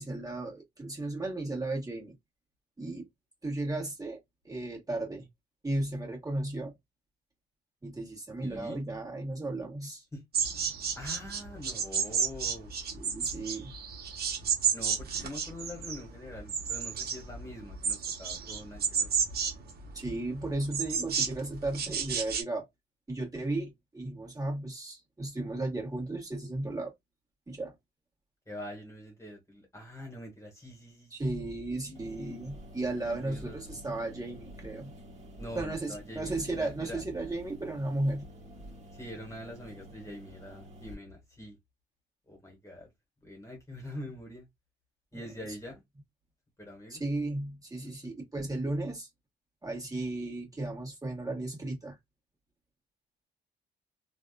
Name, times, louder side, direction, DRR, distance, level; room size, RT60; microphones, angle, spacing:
voice 1, 0.0-2.1 2.8-3.1 3.4-4.2 4.4-5.3 5.6-6.8 7.8-10.0 12.9-13.7 19.9-22.7 23.1-26.9 27.5-27.8 31.1-34.9 35.6-38.3 46.9-49.1 49.6-52.0, right 2 dB, 15° right, 1.8 m, -35 dB
voice 2, 8.4-8.8 10.1-10.2 10.9-12.7 14.7-19.1 28.5-32.4 33.0-33.8 35.4-37.0 38.9-41.6 42.3-42.9 43.2-44.5 45.1-45.8 46.6-47.0, left 1 dB, 15° left, 1.5 m, -44 dB
sound 1, 10.3-22.4, right 6 dB, 50° right, 1.0 m, -32 dB
sound 2, 31.9-40.9, equal, 35° right, 1.4 m, -49 dB
3.4 x 2.5 x 2.4 m
cardioid pair, 90°, 20 cm